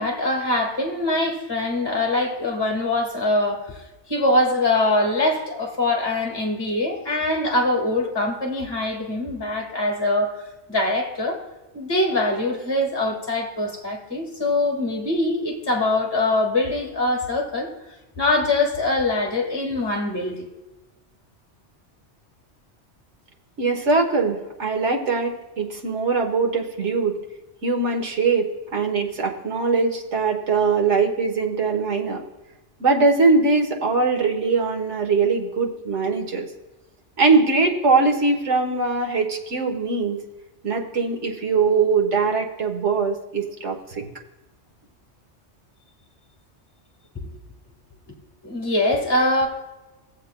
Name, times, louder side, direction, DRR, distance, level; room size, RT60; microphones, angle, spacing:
voice 1, 0.0-3.8 4.1-10.4 10.7-11.4 11.7-17.7 18.2-20.5 48.1-48.2 48.4-49.5, left 2 dB, 20° left, 0 dB, 1.7 m, -23 dB
voice 2, 23.6-27.2 27.6-28.5 28.7-32.2 32.8-36.5 37.2-40.2 40.6-44.1, right 4 dB, 80° right, 2 dB, 1.6 m, -21 dB
18.5 x 7.5 x 2.2 m, 1.1 s
omnidirectional pair, 1.2 m